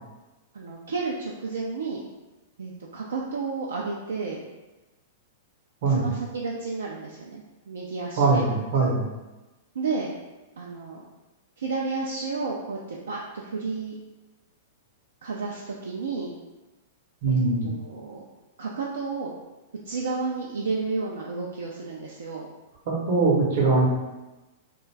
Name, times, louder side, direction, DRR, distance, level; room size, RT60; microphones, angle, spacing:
voice 1, 0.5-2.1 2.6-4.4 5.9-8.4 9.8-10.1 10.6-11.0 11.6-13.9 15.2-16.4 17.3-17.4 17.6-18.2 18.6-19.4 19.8-22.5, right 4 dB, 75° right, -3 dB, 0.3 m, -31 dB
voice 2, 5.8-6.1 8.2-9.1 17.2-17.7 22.9-23.9, right 3 dB, 60° right, -2 dB, 0.7 m, -22 dB
2.5 x 2.2 x 3.2 m, 1.1 s
hypercardioid pair, 105°, 0 cm